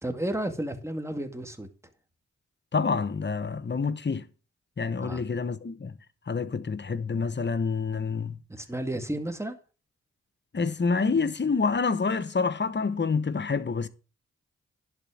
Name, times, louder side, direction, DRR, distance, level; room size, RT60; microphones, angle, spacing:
voice 1, 0.0-1.7 5.0-5.2 8.5-9.6, right 1 dB, 10° right, 2.1 m, -32 dB
voice 2, 2.7-4.3 4.8-6.0 6.3-8.4 10.5-13.9, left 4 dB, 40° left, 1.0 m, -27 dB
11.0 x 4.3 x 7.3 m
supercardioid pair, 40°, 29 cm